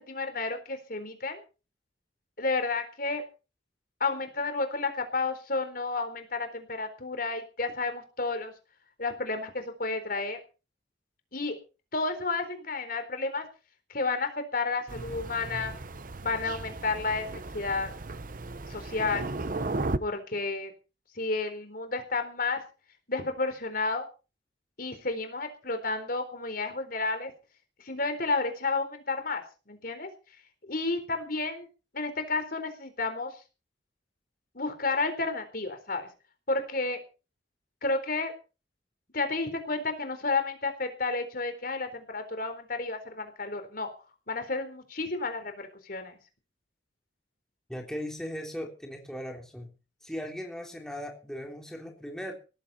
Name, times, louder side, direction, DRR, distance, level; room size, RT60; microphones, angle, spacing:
voice 1, 0.0-1.4 2.4-3.2 4.0-8.5 9.0-10.4 11.3-11.6 11.9-13.5 13.9-15.7 16.2-17.3 17.5-17.9 18.7-19.3 20.0-20.7 21.2-22.6 23.1-24.1 24.8-27.3 27.8-30.1 30.7-31.7 31.9-33.3 34.5-36.1 36.5-37.0 37.8-38.3 39.1-43.9 44.3-46.2, left 3 dB, 50° left, 8 dB, 4.0 m, -31 dB
Thunder, 14.9-20.0, right 2 dB, 50° right, 0.9 m, -35 dB
voice 2, 47.7-49.7 50.0-52.3, equal, 5° left, 1 dB, 3.3 m, -38 dB
18.0 x 15.0 x 4.3 m, 0.34 s
head